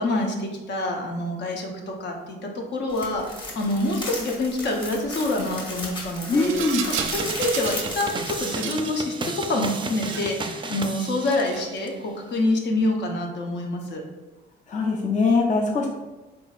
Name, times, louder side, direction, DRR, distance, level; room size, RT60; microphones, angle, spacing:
voice 1, 0.0-6.6 7.1-14.0 15.6-15.7, left 2 dB, 65° left, 1 dB, 0.8 m, -27 dB
sound 1, 2.9-8.5, left 1 dB, 25° left, 1.3 m, -35 dB
Rattle, 4.6-5.0 6.1-8.0 8.3-9.0 9.8-10.5 11.1-11.7, right 8 dB, 80° right, 0.4 m, -34 dB
voice 2, 6.3-6.9 14.7-15.9, left 3 dB, 40° left, 0 dB, 0.5 m, -22 dB
sound 2, 7.0-11.9, right 3 dB, 25° right, 0.4 m, -33 dB
3.9 x 3.7 x 2.4 m, 1.1 s
cardioid pair, 90°, 20 cm